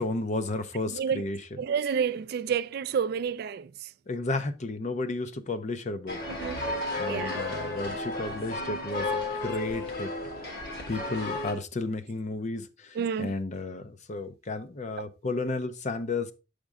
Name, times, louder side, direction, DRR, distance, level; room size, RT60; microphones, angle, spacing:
voice 1, 0.0-1.4 4.1-6.2 7.0-10.1 10.9-16.3, left 2 dB, 40° left, 0.6 m, -33 dB
voice 2, 0.9-1.3 1.6-3.9 6.4-6.6 7.1-7.4 12.9-13.3 15.0-15.1, right 7 dB, 55° right, 0.3 m, -29 dB
sound 1, 6.1-11.5, left 2 dB, 55° left, 1.5 m, -33 dB
7.3 x 5.1 x 3.5 m
head